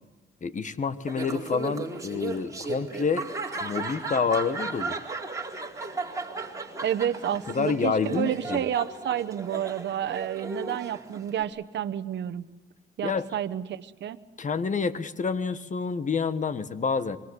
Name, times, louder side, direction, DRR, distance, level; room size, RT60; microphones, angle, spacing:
voice 1, 0.4-3.3 3.6-5.0 7.5-8.6 13.0-13.3 14.4-17.2, left 5 dB, 40° left, 14 dB, 1.5 m, -28 dB
Laughter, 1.1-11.4, right 3 dB, 15° right, 4.1 m, -35 dB
voice 2, 6.8-12.4 13.0-14.2, right 10 dB, 60° right, 10 dB, 1.1 m, -30 dB
25.5 x 23.0 x 8.3 m, 1.1 s
cardioid pair, 90°, 20 cm